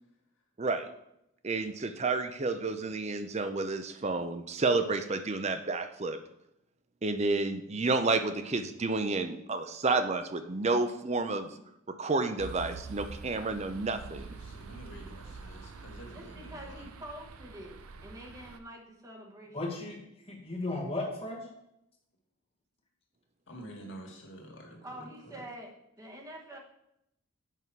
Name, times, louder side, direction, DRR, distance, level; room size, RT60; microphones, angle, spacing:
voice 1, 1.4-6.2 7.0-11.5 11.9-14.3, right 3 dB, 30° right, 9 dB, 0.5 m, -30 dB
sound 1, 12.4-18.6, right 4 dB, 90° right, 0.6 m, -46 dB
voice 2, 14.0-16.9 23.5-25.4, right 1 dB, 60° left, -1 dB, 1.9 m, -48 dB
voice 3, 16.1-19.8 24.8-26.6, right 1 dB, 15° right, 0 dB, 1.0 m, -46 dB
voice 4, 19.5-21.5, left 2 dB, 30° left, 0 dB, 1.5 m, -36 dB
8.3 x 5.6 x 4.6 m, 0.82 s
head